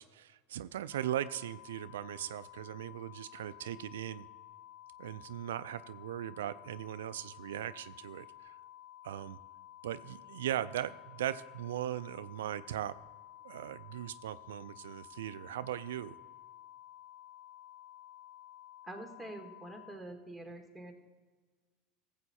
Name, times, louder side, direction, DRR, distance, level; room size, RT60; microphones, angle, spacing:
voice 1, 0.0-4.3 5.0-8.5 9.0-9.4 9.8-12.9 13.4-16.2, right 12 dB, 90° right, 13 dB, 0.3 m, -39 dB
sound 1, 0.9-19.9, left 13 dB, 40° left, 2.0 m, -53 dB
voice 2, 18.8-20.9, right 1 dB, ahead, 4 dB, 1.8 m, -46 dB
13.5 x 7.7 x 4.2 m, 1.3 s
supercardioid pair, 100°, 0 cm